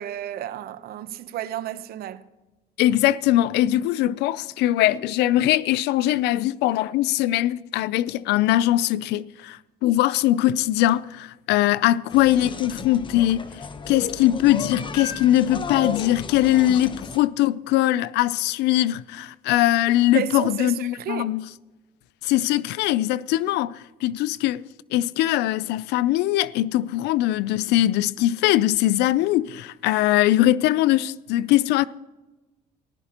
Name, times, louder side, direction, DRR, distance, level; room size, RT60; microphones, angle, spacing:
voice 1, 0.0-2.3 20.1-21.3, right 11 dB, 65° right, 0.8 m, -31 dB
voice 2, 2.8-13.4 13.9-21.5 22.2-24.6 24.9-31.9, left 14 dB, 85° left, 0.5 m, -21 dB
sound 1, 12.1-17.2, left 4 dB, 30° left, 1.0 m, -34 dB
19.5 x 14.5 x 2.9 m
cardioid pair, 110°, 17 cm